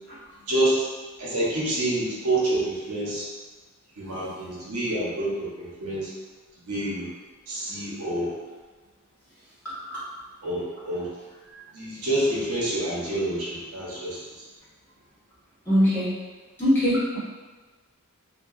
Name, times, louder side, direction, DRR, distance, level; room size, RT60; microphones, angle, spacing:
voice 1, 0.5-0.8 1.2-3.2 4.0-6.1 6.7-7.1 7.5-8.3 10.4-11.1 11.7-14.2, right 1 dB, 90° right, -7 dB, 0.9 m, -27 dB
voice 2, 15.7-16.1 16.6-17.2, equal, 10° left, -12 dB, 1.2 m, -21 dB
2.8 x 2.2 x 2.5 m, 1.3 s
head